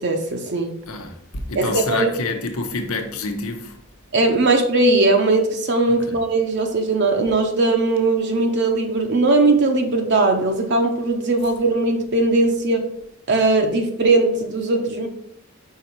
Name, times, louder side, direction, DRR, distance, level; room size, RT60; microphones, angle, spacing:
voice 1, 0.0-0.7 1.6-2.1 4.1-12.8 13.3-15.1, right 2 dB, 50° right, 0.7 m, -19 dB
voice 2, 0.9-3.8 5.9-6.2, left 3 dB, 80° left, 0.9 m, -28 dB
5.6 x 4.3 x 4.5 m
head